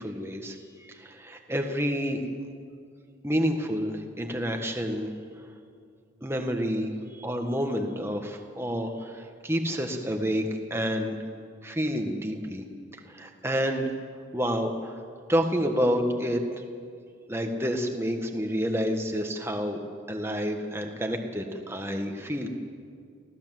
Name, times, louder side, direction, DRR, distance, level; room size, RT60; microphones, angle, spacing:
voice 1, 0.0-2.2 3.2-5.1 6.2-11.2 11.6-12.6 13.0-13.9 14.3-15.0 15.3-16.6 17.3-19.8 20.1-22.5, equal, 10° right, 4 dB, 1.5 m, -29 dB
24.5 x 16.0 x 7.7 m, 2.2 s
head